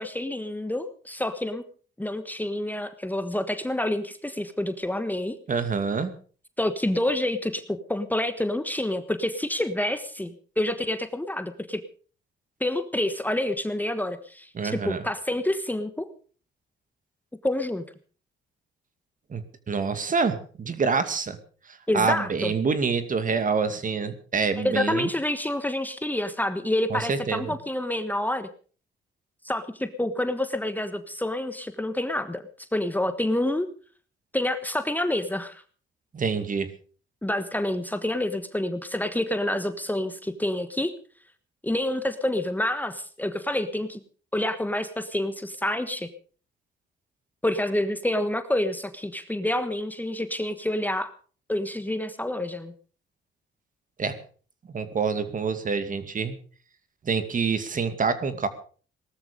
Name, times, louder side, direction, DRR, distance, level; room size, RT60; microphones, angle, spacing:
voice 1, 0.0-1.6 2.0-5.4 6.6-11.8 12.6-16.1 17.4-17.8 21.9-22.5 24.6-28.5 29.4-33.7 34.3-35.6 37.2-40.9 41.6-44.0 44.3-46.1 47.4-51.1 51.5-52.7, left 1 dB, 10° left, 10 dB, 1.3 m, -28 dB
voice 2, 5.5-6.1 14.5-15.0 19.3-19.4 19.7-21.4 21.9-25.1 26.9-27.5 36.1-36.7 54.0-54.2 54.7-56.3 57.0-58.5, right 5 dB, 40° right, 11 dB, 2.4 m, -26 dB
18.5 x 13.0 x 5.2 m, 0.41 s
cardioid pair, 90°, 20 cm